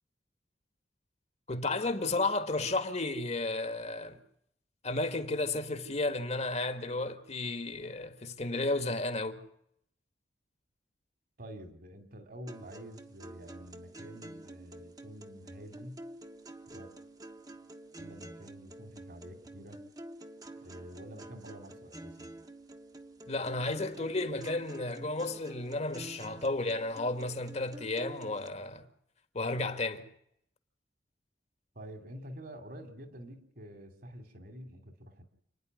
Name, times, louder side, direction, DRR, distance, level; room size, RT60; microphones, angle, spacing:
voice 1, 1.5-4.2 4.8-9.4 23.3-28.8 29.3-30.1, left 2 dB, 40° left, 1.8 m, -33 dB
voice 2, 11.4-16.0 16.7-16.9 18.0-19.8 20.5-22.3 31.7-35.2, equal, 55° right, 3.0 m, -48 dB
sound 1, 12.5-28.5, right 1 dB, 20° right, 1.4 m, -49 dB
29.0 x 10.5 x 9.6 m
head